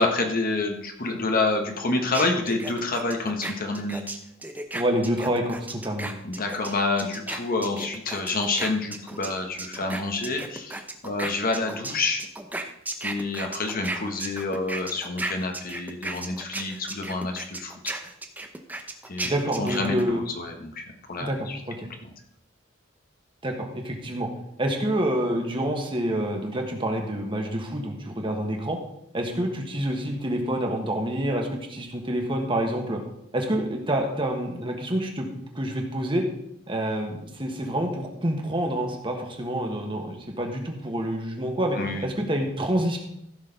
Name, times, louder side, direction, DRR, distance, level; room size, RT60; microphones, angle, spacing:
voice 1, 0.0-4.0 6.2-12.2 13.0-17.9 19.1-21.6 41.7-42.1, left 3 dB, 45° left, 3 dB, 1.3 m, -28 dB
sound 1, 2.1-9.3 9.6-20.0, right 2 dB, 10° right, 0.8 m, -34 dB
voice 2, 4.7-6.2 19.2-20.2 21.2-21.9 23.4-24.3 24.6-28.8 29.1-33.0 33.3-35.3 35.5-36.3 36.7-43.0, right 1 dB, 25° right, 2 dB, 1.6 m, -27 dB
15.0 x 6.5 x 4.0 m, 0.76 s
head